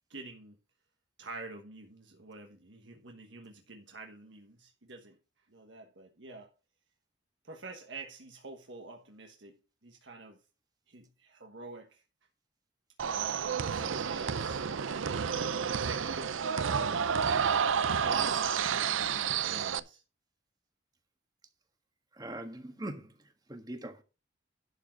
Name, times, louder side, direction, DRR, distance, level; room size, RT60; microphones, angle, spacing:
voice 1, 0.1-0.6 1.2-5.1 5.5-6.5 7.4-9.6 9.8-10.4 10.9-12.0 13.0-14.6 15.4-17.3 17.7-20.0, right 3 dB, 70° right, 1.3 m, -46 dB
sound 1, 13.0-19.8, right 7 dB, 90° right, 0.6 m, -30 dB
voice 2, 22.1-23.2 23.5-24.0, right 1 dB, 20° right, 1.5 m, -41 dB
11.5 x 4.8 x 6.3 m
head